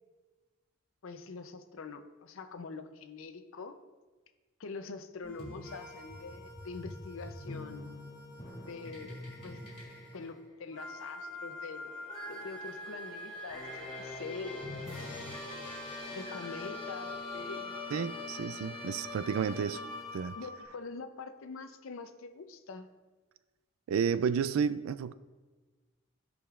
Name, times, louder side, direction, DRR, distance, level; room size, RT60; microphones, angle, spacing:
voice 1, 1.0-3.8 4.6-7.9 8.6-9.6 10.1-11.9 12.3-14.7 16.1-17.8 20.4-22.9, left 4 dB, 70° left, 9 dB, 0.5 m, -44 dB
sound 1, 5.2-20.7, left 2 dB, 25° left, 2.4 m, -43 dB
voice 2, 17.9-19.8 20.1-20.4 23.9-25.1, right 7 dB, 80° right, 14 dB, 0.3 m, -31 dB
14.0 x 5.0 x 2.4 m, 1.3 s
head